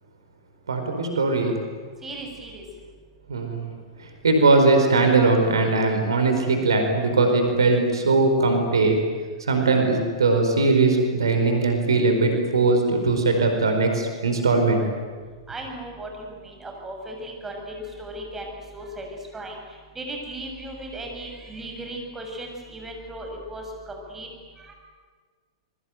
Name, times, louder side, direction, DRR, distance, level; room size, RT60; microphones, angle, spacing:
voice 1, 0.7-1.6 3.3-3.7 4.0-9.0 9.4-14.8, right 3 dB, 70° right, 5 dB, 4.6 m, -20 dB
voice 2, 2.0-2.6 15.5-19.1 19.3-19.6 20.0-24.3 24.6-24.7, right 1 dB, 15° right, 2 dB, 7.0 m, -36 dB
26.0 x 23.0 x 9.3 m, 1.5 s
figure-of-eight pair, 100°, 2 cm